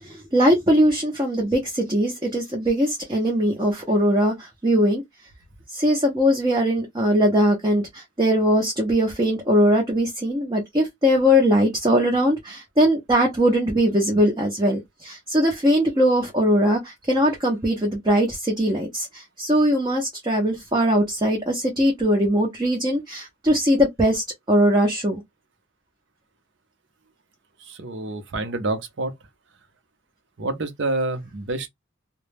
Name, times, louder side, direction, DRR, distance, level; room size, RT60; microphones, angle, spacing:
voice 1, 0.0-5.0 5.7-25.2, equal, 20° right, 0.5 m, -21 dB
voice 2, 27.6-29.1 30.4-31.7, right 2 dB, 60° right, 0.6 m, -28 dB
2.2 x 2.0 x 3.2 m
head